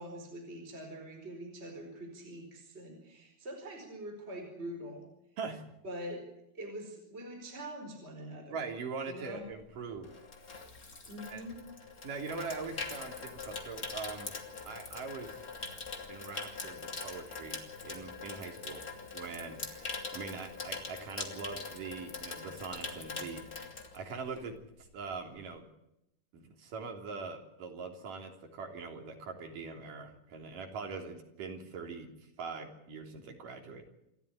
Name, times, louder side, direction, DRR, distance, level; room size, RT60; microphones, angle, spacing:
voice 1, 0.0-5.1 5.8-6.2 6.5-8.6 9.0-9.4 11.0-11.6, equal, 15° right, 3 dB, 4.8 m, -44 dB
voice 2, 8.5-10.1 11.3-11.4 12.0-14.3 14.6-15.4 16.1-18.8 19.1-24.6 24.9-25.7 26.3-33.8, right 4 dB, 70° right, 4 dB, 4.8 m, -42 dB
Water tap faucet / Sink (filling or washing), 9.5-24.6 24.9-25.1, left 4 dB, 25° left, 2.8 m, -43 dB
28.0 x 13.5 x 9.8 m, 0.84 s
omnidirectional pair, 3.9 m